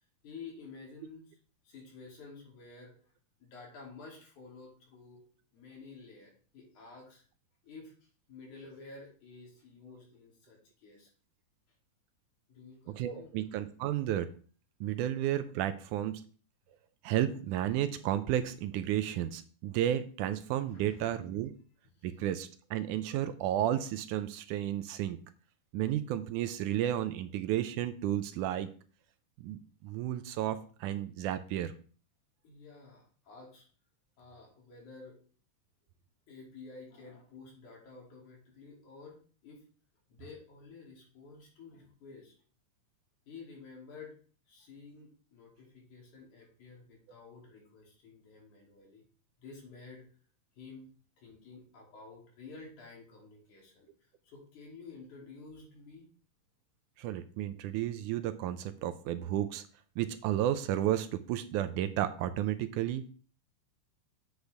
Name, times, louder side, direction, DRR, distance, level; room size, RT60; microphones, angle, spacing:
voice 1, 0.2-1.4 1.6-2.9 3.4-5.2 5.5-7.2 7.6-11.1 12.5-13.3 20.6-21.1 22.0-22.1 32.4-33.7 34.2-35.2 36.3-39.2 39.4-39.6 40.1-42.3 43.3-44.1 44.5-49.0 49.4-50.0 50.6-50.9 51.2-56.1, left 4 dB, 65° left, -2 dB, 4.3 m, -51 dB
voice 2, 12.9-14.3 14.8-16.2 17.0-21.5 22.0-25.2 25.7-28.7 29.4-31.7 57.0-59.6 60.0-63.1, right 12 dB, 80° right, 11 dB, 2.0 m, -32 dB
8.1 x 8.1 x 3.4 m, 0.41 s
omnidirectional pair, 3.7 m